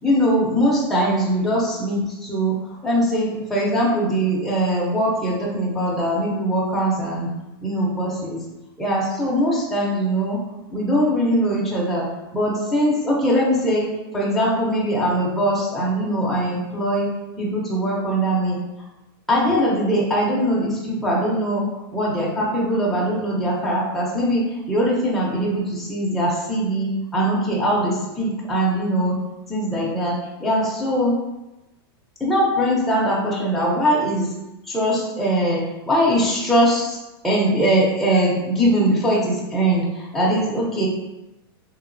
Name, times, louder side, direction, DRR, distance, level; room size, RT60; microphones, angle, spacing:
voice 1, 0.0-7.3 7.6-8.4 8.8-10.4 10.7-18.6 19.3-29.2 29.5-31.2 32.2-34.3 34.7-37.0 37.2-40.9, equal, ahead, -6 dB, 0.5 m, -21 dB
2.9 x 2.4 x 2.6 m, 0.98 s
supercardioid pair, 145°, 13 cm